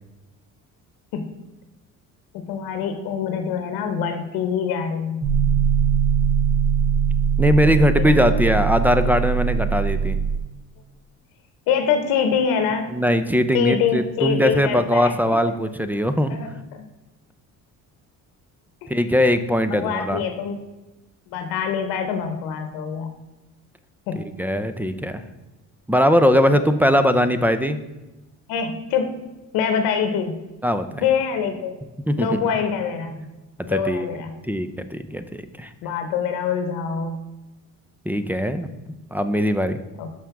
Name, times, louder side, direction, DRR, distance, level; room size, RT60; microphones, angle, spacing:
voice 1, 2.3-5.2 7.6-8.5 11.7-13.0 13.5-15.1 16.3-16.8 18.8-18.9 19.7-20.6 21.3-23.1 24.1-24.3 26.5-26.7 28.5-30.4 31.0-31.8 32.2-33.2 33.6-34.4 35.8-37.2 40.0-40.1, left 7 dB, 90° left, 7 dB, 0.9 m, -25 dB
sound 1, 5.2-10.4, right 6 dB, 45° right, 1.0 m, -21 dB
voice 2, 7.4-10.2 12.9-16.4 18.9-20.2 24.1-25.2 25.9-27.8 30.6-31.0 32.1-32.3 33.7-34.1 34.4-35.7 38.1-38.7 39.1-39.8, equal, 5° right, 10 dB, 0.4 m, -20 dB
6.3 x 5.7 x 5.8 m, 1.1 s
cardioid pair, 110°, 35 cm